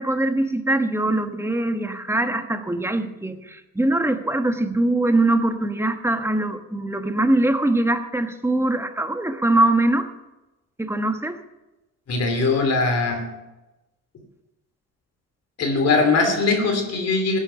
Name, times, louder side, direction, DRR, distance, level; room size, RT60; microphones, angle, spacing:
voice 1, 0.0-10.1 10.8-11.4, right 2 dB, 10° right, 7 dB, 1.3 m, -22 dB
voice 2, 12.1-13.3 15.6-17.4, left 3 dB, 55° left, 5 dB, 2.9 m, -21 dB
16.0 x 9.8 x 5.7 m, 1.0 s
cardioid pair, 90°, 30 cm